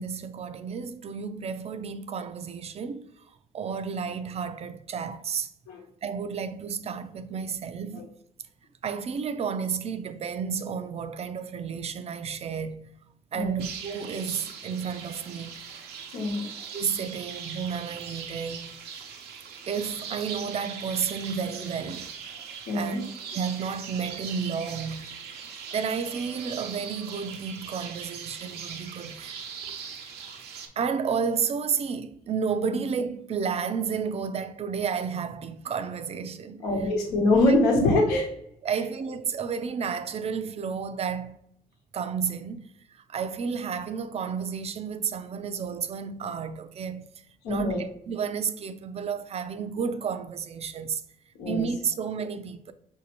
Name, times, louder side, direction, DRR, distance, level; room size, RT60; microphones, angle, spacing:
voice 1, 0.0-3.1 3.5-5.5 6.0-8.1 8.8-12.9 13.3-15.5 16.7-18.7 19.7-22.1 22.7-23.0 23.3-25.1 25.7-29.4 30.8-36.6 38.6-41.4 41.9-42.7 43.1-47.1 47.5-51.0 51.5-52.7, right 6 dB, 40° right, 0.4 m, -31 dB
sound 1, 13.6-30.7, right 6 dB, 75° right, 0.7 m, -40 dB
voice 2, 16.1-16.5 22.7-23.0 36.6-38.3 47.4-47.8 51.4-51.6, left 2 dB, 85° left, 1.0 m, -23 dB
5.3 x 2.6 x 2.9 m
supercardioid pair, 70°, 16 cm